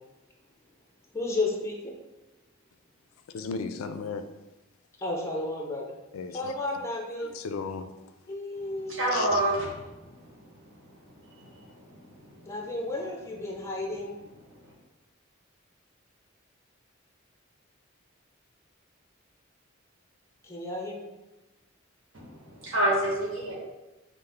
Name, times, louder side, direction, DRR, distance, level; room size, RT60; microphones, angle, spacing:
voice 1, 1.1-2.0 5.0-6.0 6.3-7.3 8.3-9.4 12.5-14.2 20.4-21.1, left 2 dB, 15° left, 0 dB, 0.5 m, -33 dB
voice 2, 3.3-4.3 6.1-6.6 7.2-7.9 9.1-9.4, left 5 dB, 90° left, 9 dB, 0.3 m, -35 dB
voice 3, 8.9-10.3 11.4-11.7 12.1-12.2 22.1-23.5, right 1 dB, 70° right, -4 dB, 1.1 m, -28 dB
5.3 x 2.0 x 3.3 m, 1.1 s
head